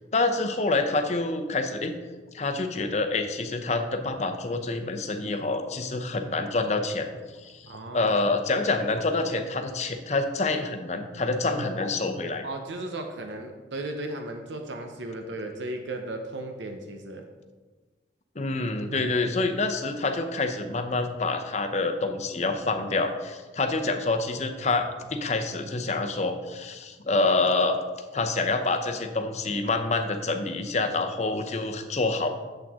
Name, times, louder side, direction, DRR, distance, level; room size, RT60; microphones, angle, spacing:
voice 1, 0.1-2.0 2.3-7.1 7.4-12.4 18.4-27.8 28.1-32.3, left 3 dB, 40° left, 6 dB, 0.7 m, -27 dB
voice 2, 7.7-8.2 12.4-17.3, right 2 dB, 85° right, 4 dB, 0.8 m, -35 dB
8.7 x 7.6 x 3.6 m, 1.3 s
head